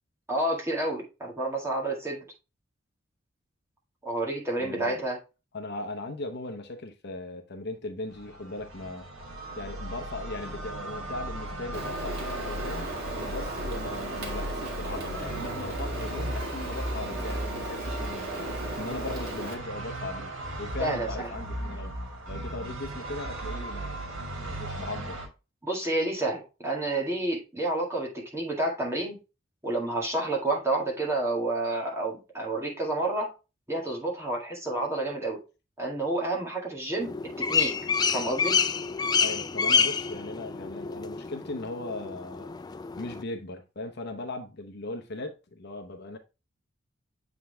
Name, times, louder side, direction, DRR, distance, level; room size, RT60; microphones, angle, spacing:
voice 1, 0.3-2.2 4.0-5.2 20.8-21.3 25.6-29.2 29.6-33.3 33.7-35.4 35.8-37.7 38.1-38.6, right 2 dB, 15° right, 1.9 m, -29 dB
voice 2, 4.6-5.0 5.5-9.1 9.5-21.9 22.3-25.2 39.2-42.6 43.0-46.2, left 2 dB, 55° left, 0.9 m, -38 dB
sound 1, 8.1-25.3, right 1 dB, 75° right, 1.9 m, -36 dB
Rain, 11.7-19.6, right 2 dB, 55° right, 2.0 m, -37 dB
sound 2, 37.0-43.2, left 6 dB, 20° left, 0.3 m, -28 dB
7.6 x 3.9 x 3.4 m
head